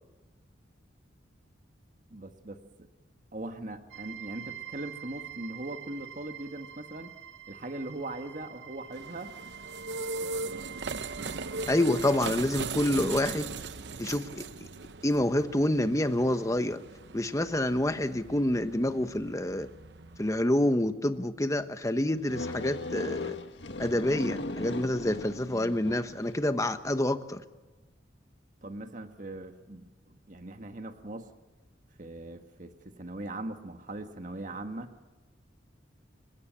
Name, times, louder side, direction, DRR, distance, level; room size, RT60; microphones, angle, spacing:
voice 1, 2.1-2.6 3.3-7.1 7.5-9.3 28.6-31.3 32.0-34.9, right 2 dB, 45° right, 6 dB, 1.6 m, -40 dB
sound 1, 3.9-12.2, right 10 dB, 85° right, 1.9 m, -46 dB
sound 2, 8.9-20.4, right 4 dB, 65° right, 0.8 m, -39 dB
voice 2, 11.7-13.5 14.0-14.7 15.0-16.8 17.1-19.7 20.2-23.4 23.8-27.4, left 1 dB, 15° left, 9 dB, 1.1 m, -27 dB
sound 3, 22.3-26.3, left 2 dB, 75° left, 1.7 m, -37 dB
30.0 x 17.0 x 7.5 m, 1.2 s
head